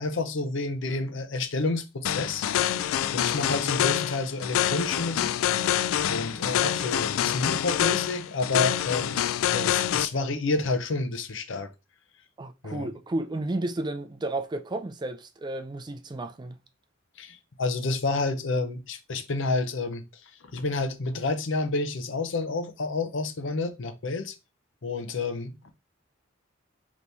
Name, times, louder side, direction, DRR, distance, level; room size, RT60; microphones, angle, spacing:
voice 1, 0.0-2.5 3.1-5.4 6.1-9.2 9.5-11.7 12.6-12.9 17.2-20.0 20.5-24.4 24.8-25.7, left 3 dB, 65° left, 0.7 m, -29 dB
sound 1, 2.0-10.1, left 11 dB, 90° left, 0.3 m, -26 dB
voice 2, 12.4-16.6, right 2 dB, 20° right, 0.4 m, -32 dB
3.4 x 3.1 x 4.0 m
head